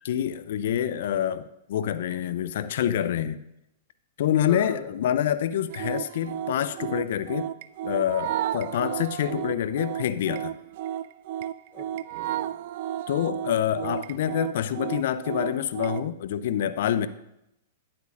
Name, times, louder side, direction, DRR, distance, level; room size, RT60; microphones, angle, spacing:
voice 1, 0.0-3.4 4.2-7.5 7.8-10.6 13.1-17.1, left 10 dB, 65° left, 14 dB, 0.4 m, -27 dB
voice 2, 4.5-4.9 9.2-9.5 11.7-12.0 13.8-14.0, left 7 dB, 30° left, 6 dB, 1.0 m, -40 dB
sound 1, 5.7-16.1, right 11 dB, 55° right, 0.4 m, -33 dB
12.0 x 9.6 x 2.5 m, 0.83 s
hypercardioid pair, 115°, 0 cm